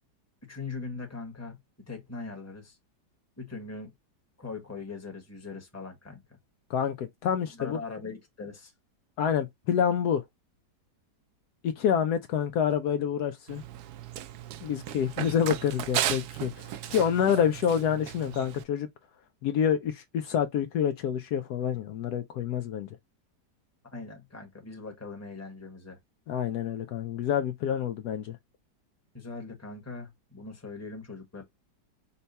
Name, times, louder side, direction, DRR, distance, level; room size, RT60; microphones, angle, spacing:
voice 1, 0.5-1.6 1.9-2.8 3.4-3.9 4.4-6.4 7.5-8.7 23.9-26.0 29.1-31.4, left 4 dB, 10° left, 1.0 m, -40 dB
voice 2, 6.7-7.8 9.2-10.2 11.6-13.6 14.6-18.9 19.4-22.9 26.3-28.4, left 8 dB, 70° left, 1.0 m, -27 dB
Run, 13.5-18.6, right 11 dB, 70° right, 1.1 m, -35 dB
5.5 x 2.2 x 4.0 m
omnidirectional pair, 1.9 m